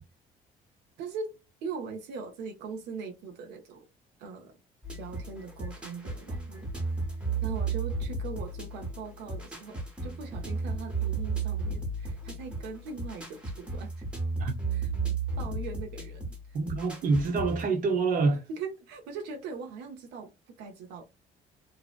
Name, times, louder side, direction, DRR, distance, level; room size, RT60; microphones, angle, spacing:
voice 1, 1.0-3.9 4.2-4.5 5.0-6.9 7.4-14.0 14.7-14.9 15.4-16.6 18.5-20.3 20.6-21.0, right 5 dB, 90° right, 0.6 m, -41 dB
sound 1, 4.8-17.7, right 4 dB, 5° right, 0.9 m, -34 dB
voice 2, 16.5-18.5, right 4 dB, 55° right, 0.8 m, -26 dB
2.6 x 2.0 x 2.3 m
cardioid pair, 110°, 17 cm